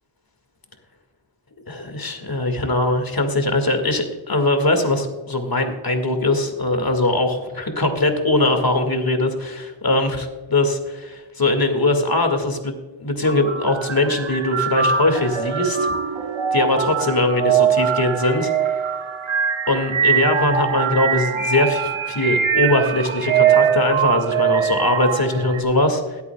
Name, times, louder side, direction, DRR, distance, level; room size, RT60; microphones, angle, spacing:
voice 1, 1.7-12.7 13.0-15.9 16.5-18.5 19.7-26.2, left 2 dB, 50° left, 6 dB, 2.1 m, -21 dB
sound 1, 13.2-25.6, right 8 dB, 80° right, 1.0 m, -22 dB
21.0 x 8.4 x 2.3 m, 1.3 s
cardioid pair, 40°, 47 cm